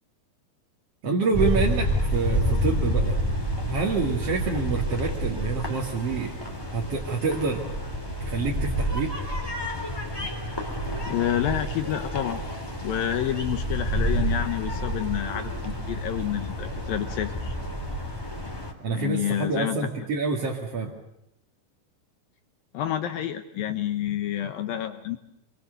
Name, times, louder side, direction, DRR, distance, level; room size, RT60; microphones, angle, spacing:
voice 1, 1.0-3.2 3.7-6.4 6.7-7.7 8.2-9.2 18.8-20.9, right 4 dB, 40° right, -2 dB, 2.7 m, -27 dB
sound 1, 1.3-18.7, equal, 5° left, 2.2 m, -29 dB
voice 2, 11.1-12.4 12.8-17.5 18.9-19.8 22.7-25.2, left 11 dB, 70° left, 8 dB, 2.3 m, -29 dB
27.5 x 23.0 x 6.7 m, 0.82 s
omnidirectional pair, 5.3 m